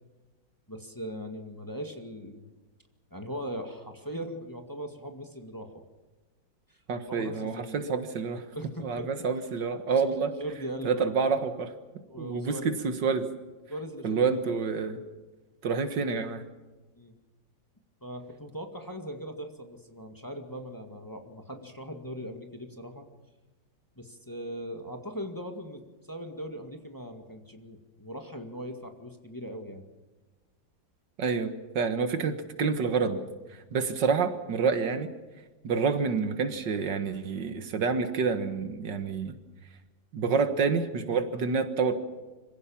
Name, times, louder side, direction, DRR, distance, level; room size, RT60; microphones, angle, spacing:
voice 1, 0.7-2.5 3.1-5.8 6.7-7.8 8.5-9.1 9.9-11.1 12.1-12.8 13.7-14.6 16.9-17.2 18.0-23.1 24.0-25.8 26.1-29.9, equal, 10° left, 4 dB, 1.9 m, -40 dB
voice 2, 6.9-8.4 8.8-10.3 10.8-11.7 12.2-13.3 14.0-15.0 15.6-16.4 31.2-33.2 33.7-35.1 35.6-39.4 40.1-41.9, right 5 dB, 70° right, 9 dB, 2.1 m, -28 dB
25.5 x 16.5 x 7.2 m, 1.2 s
omnidirectional pair, 2.0 m